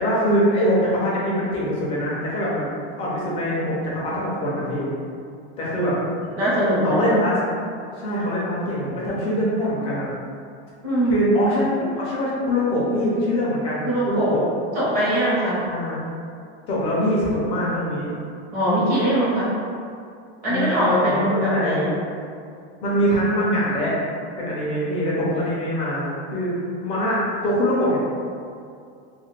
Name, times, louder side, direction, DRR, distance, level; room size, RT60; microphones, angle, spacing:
voice 1, 0.0-2.7 3.0-4.9 5.6-5.9 6.8-7.4 8.0-10.1 11.1-11.7 11.9-14.5 15.6-16.0 16.7-18.1 20.5-21.9 22.8-24.0 24.4-26.5 26.8-28.0, equal, 20° left, -6 dB, 0.4 m, -23 dB
voice 2, 6.4-7.1 10.8-11.3 13.8-14.4 14.7-15.6 18.5-19.5 20.4-21.9, right 1 dB, 30° right, -9 dB, 0.9 m, -21 dB
2.6 x 2.4 x 3.1 m, 2.4 s
supercardioid pair, 175°, 31 cm